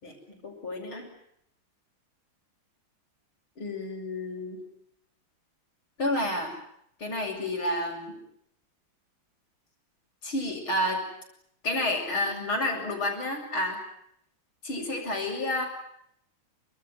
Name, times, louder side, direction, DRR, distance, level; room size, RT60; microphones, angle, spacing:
voice 1, 0.0-1.1 3.6-4.6 6.0-6.5 7.0-8.2 10.2-11.1 11.6-13.8 14.6-15.6, left 1 dB, 85° left, -4 dB, 7.8 m, -30 dB
28.0 x 26.5 x 7.9 m, 0.73 s
omnidirectional pair, 2.2 m